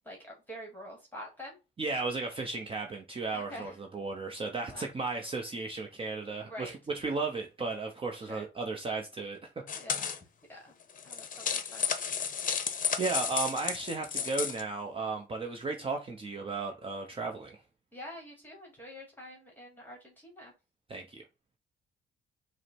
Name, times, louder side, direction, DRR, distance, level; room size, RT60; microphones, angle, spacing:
voice 1, 0.0-1.6 3.3-3.7 4.7-4.9 6.4-6.7 8.2-8.4 9.7-10.1 10.5-10.7 11.0-11.9 17.9-20.5, equal, 10° left, 1.4 m, -46 dB
voice 2, 1.8-9.4 12.6-17.6 20.9-21.2, right 3 dB, 25° right, 0.7 m, -35 dB
sound 1, 9.7-10.2 10.9-14.6, left 7 dB, 45° left, 0.7 m, -33 dB
4.8 x 2.1 x 4.4 m
cardioid pair, 90°, 20 cm